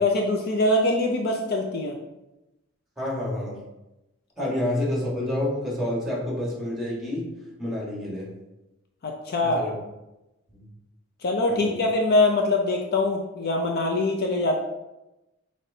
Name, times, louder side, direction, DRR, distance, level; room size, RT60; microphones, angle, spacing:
voice 1, 0.0-2.0 4.4-4.5 9.0-9.6 11.2-14.5, left 2 dB, 50° left, 2 dB, 0.5 m, -23 dB
voice 2, 3.0-3.6 4.4-7.3 7.6-8.3 9.4-9.7 10.5-10.7 11.5-11.8, left 1 dB, ahead, -5 dB, 1.5 m, -28 dB
5.7 x 3.1 x 2.7 m, 0.96 s
head